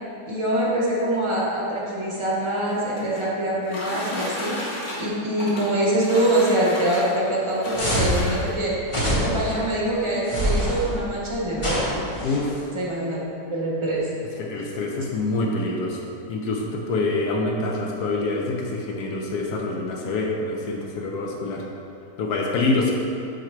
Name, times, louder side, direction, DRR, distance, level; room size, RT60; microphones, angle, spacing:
voice 1, 0.3-4.6 5.0-8.7 9.1-12.0 12.7-13.2 13.5-14.1, right 1 dB, 20° right, -6 dB, 0.9 m, -24 dB
sound 1, 2.5-8.7 9.6-9.7 10.1-10.2 10.5-10.9, left 1 dB, 90° left, 1.8 m, -34 dB
sound 2, 7.7-8.2 8.9-9.5 10.3-10.8 11.6-12.4, equal, 25° left, 0.7 m, -24 dB
voice 2, 12.2-12.7 14.4-21.6 22.2-22.9, left 2 dB, 75° left, -1 dB, 1.2 m, -26 dB
4.8 x 4.4 x 4.5 m, 2.7 s
omnidirectional pair, 1.8 m